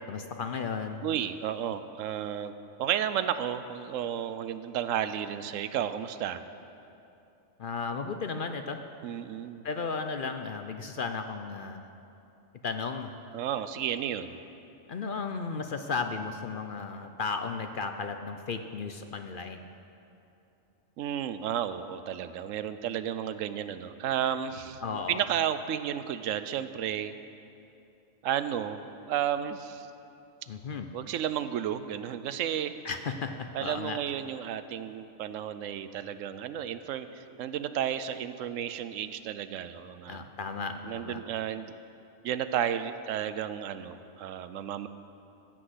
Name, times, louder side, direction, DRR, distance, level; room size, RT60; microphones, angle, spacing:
voice 1, 0.1-1.0 7.6-8.8 9.6-11.8 12.6-13.1 14.9-19.7 24.8-25.2 30.5-30.9 32.8-34.0 40.1-41.2, left 5 dB, 55° left, 7 dB, 0.6 m, -34 dB
voice 2, 1.0-2.5 2.8-6.4 9.0-9.7 13.3-14.4 21.0-27.1 28.2-29.9 30.9-32.7 33.5-40.2 40.8-41.7 42.2-44.9, right 9 dB, 85° right, 12 dB, 1.0 m, -32 dB
15.0 x 6.3 x 7.9 m, 2.8 s
omnidirectional pair, 1.3 m